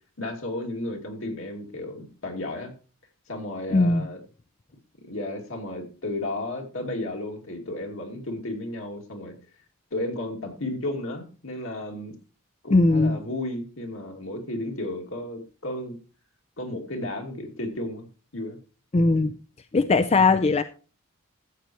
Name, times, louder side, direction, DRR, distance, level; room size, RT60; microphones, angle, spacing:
voice 1, 0.2-2.7 3.3-4.2 5.0-9.3 9.9-12.1 12.6-16.0 16.6-18.1 18.3-18.6, left 1 dB, 65° left, 2 dB, 2.5 m, -33 dB
voice 2, 3.7-4.0 12.7-13.2 18.9-19.3 19.7-20.6, left 3 dB, 30° left, 12 dB, 0.4 m, -19 dB
13.5 x 8.1 x 3.1 m, 0.35 s
head